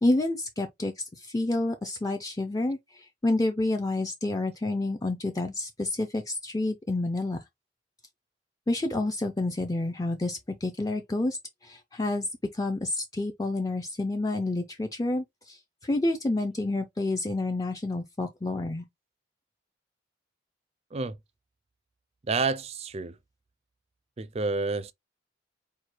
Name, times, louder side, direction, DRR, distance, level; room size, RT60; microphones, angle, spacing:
voice 1, 0.0-7.4 8.7-11.4 11.6-12.3 12.5-18.8, left 2 dB, 20° left, 0.5 m, -29 dB
voice 2, 22.3-23.2 24.2-24.9, right 3 dB, 35° right, 0.4 m, -29 dB
4.7 x 2.2 x 4.5 m
head